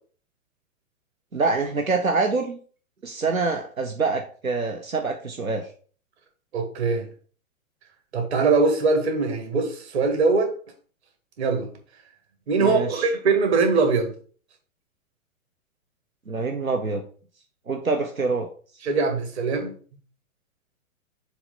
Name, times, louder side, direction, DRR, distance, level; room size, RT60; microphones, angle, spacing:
voice 1, 1.3-2.6 3.0-5.7 12.6-13.1 16.3-17.0 17.7-18.5, right 4 dB, 85° right, 0.9 m, -25 dB
voice 2, 6.5-7.1 8.1-10.5 11.4-11.7 12.5-14.1 18.8-19.7, right 4 dB, 50° right, 1.9 m, -22 dB
6.9 x 3.3 x 5.3 m
figure-of-eight pair, 115°, 41 cm